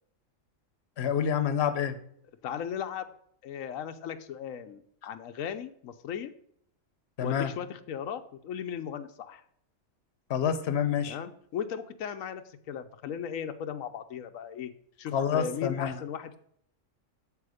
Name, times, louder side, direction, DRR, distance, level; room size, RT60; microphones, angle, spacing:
voice 1, 1.0-2.0 7.2-7.5 10.3-11.2 15.1-16.0, left 8 dB, 55° left, 10 dB, 1.1 m, -27 dB
voice 2, 2.4-3.1 3.4-6.3 7.2-9.4 11.1-14.7 15.0-16.4, left 8 dB, 90° left, 8 dB, 1.1 m, -37 dB
8.3 x 7.6 x 4.9 m, 0.67 s
omnidirectional pair, 1.4 m